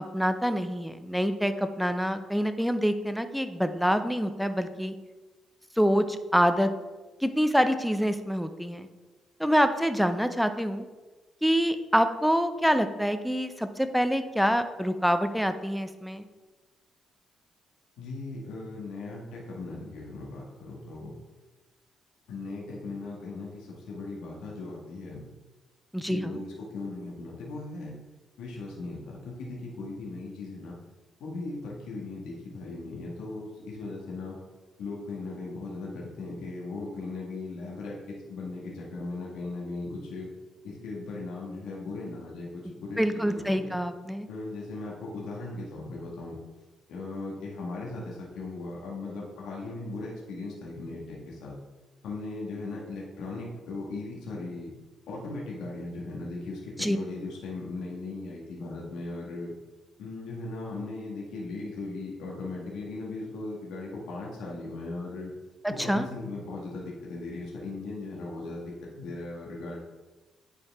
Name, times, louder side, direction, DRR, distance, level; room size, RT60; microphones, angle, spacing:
voice 1, 0.1-4.9 5.8-6.7 7.2-8.9 9.4-10.9 11.4-16.2 25.9-26.4 43.0-44.3 56.8-57.0 65.6-66.1, equal, ahead, 9 dB, 0.6 m, -26 dB
voice 2, 18.0-21.1 22.3-25.2 26.1-27.9 28.4-30.8 31.2-34.4 34.8-40.3 40.6-43.8 44.3-46.4 46.9-51.5 52.0-54.7 55.1-59.5 60.0-65.3 65.7-69.8, left 3 dB, 85° left, -3 dB, 1.6 m, -38 dB
9.6 x 4.6 x 3.6 m, 1.2 s
cardioid pair, 90°, 0 cm